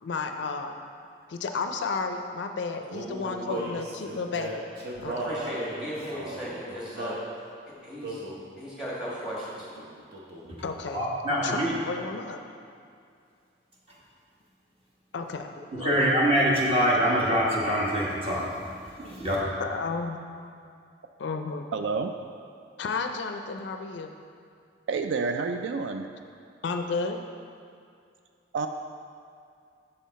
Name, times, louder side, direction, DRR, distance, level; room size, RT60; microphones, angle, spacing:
voice 1, 0.0-0.7 1.3-4.6 5.0-5.1 10.6-12.4 15.1-15.5 15.8-16.1 19.6-20.2 21.2-21.7 22.8-24.1 26.6-27.2, left 4 dB, 65° left, 5 dB, 0.4 m, -32 dB
Male singing, 2.9-7.3 8.0-8.4 9.1-9.3 9.6-10.6, right 1 dB, 50° right, 0.9 m, -36 dB
voice 2, 3.2-3.6 5.1-7.2 7.7-8.2 8.6-9.7, equal, 5° right, -7 dB, 1.4 m, -37 dB
voice 3, 10.9-11.7 15.7-18.4 19.0-19.4, equal, 30° right, -6 dB, 1.2 m, -24 dB
voice 4, 21.7-22.1 24.9-26.1 28.5-28.7, right 4 dB, 70° right, 7 dB, 0.3 m, -28 dB
6.7 x 5.6 x 4.1 m, 2.4 s
head